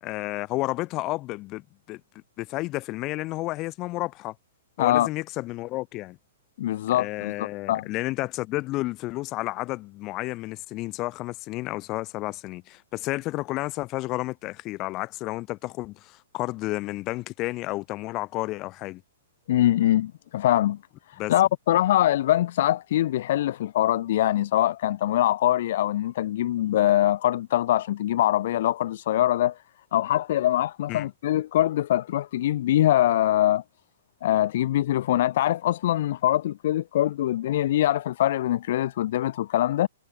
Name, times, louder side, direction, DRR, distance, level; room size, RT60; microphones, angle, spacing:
voice 1, 0.0-2.0 2.4-4.3 4.8-6.2 6.9-19.0 21.2-21.3 30.9-31.1, left 19 dB, 35° left, 1.7 m, -31 dB
voice 2, 6.6-7.9 19.5-20.8 21.1-29.6 29.9-33.6 34.2-39.9, left 13 dB, 60° left, 0.4 m, -23 dB
hypercardioid pair, 125°, 0 cm